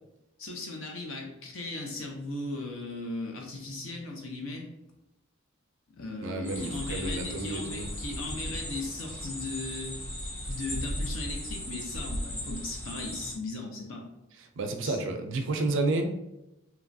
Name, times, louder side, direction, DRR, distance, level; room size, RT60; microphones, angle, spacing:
voice 1, 0.4-4.6 5.9-10.0 10.5-14.1 14.8-15.0, left 2 dB, 65° left, 1 dB, 0.6 m, -37 dB
voice 2, 6.2-7.9 8.3-8.5 14.6-16.1, right 2 dB, 60° right, 5 dB, 0.4 m, -30 dB
sound 1, 6.4-13.4, equal, 10° left, 0.4 m, -37 dB
2.9 x 2.3 x 2.5 m, 0.89 s
head